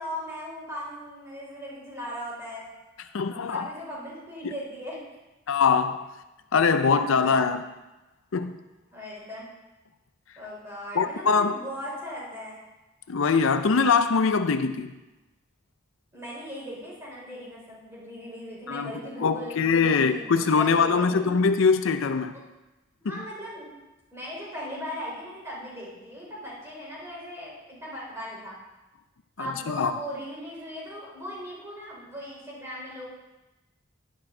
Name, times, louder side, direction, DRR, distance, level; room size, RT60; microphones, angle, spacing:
voice 1, 0.0-2.7 3.5-5.0 6.8-7.4 8.9-9.4 10.4-12.6 16.1-21.5 23.0-23.7 24.1-28.6 29.4-33.1, equal, 15° right, -6 dB, 4.1 m, -38 dB
voice 2, 3.1-3.7 4.4-4.5 5.5-6.1 6.5-7.7 8.3-8.6 10.9-11.6 13.1-14.9 18.7-18.9 19.2-22.3 23.1-23.2 29.4-29.9, left 5 dB, 70° left, 9 dB, 0.5 m, -23 dB
11.0 x 10.5 x 3.8 m, 1.1 s
head